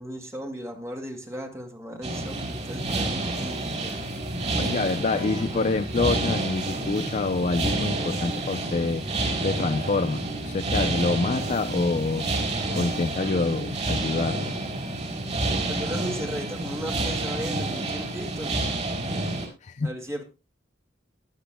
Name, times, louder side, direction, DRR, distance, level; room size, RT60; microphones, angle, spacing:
voice 1, 0.0-4.0 5.1-5.7 15.6-18.6 19.8-20.2, equal, 15° right, 2.0 m, -36 dB
sound 1, 2.0-19.5, right 2 dB, 40° right, 4.5 m, -29 dB
voice 2, 4.6-9.0 9.4-12.3 12.8-14.5 19.6-19.9, left 3 dB, 40° left, 0.5 m, -26 dB
21.0 x 8.3 x 2.2 m
head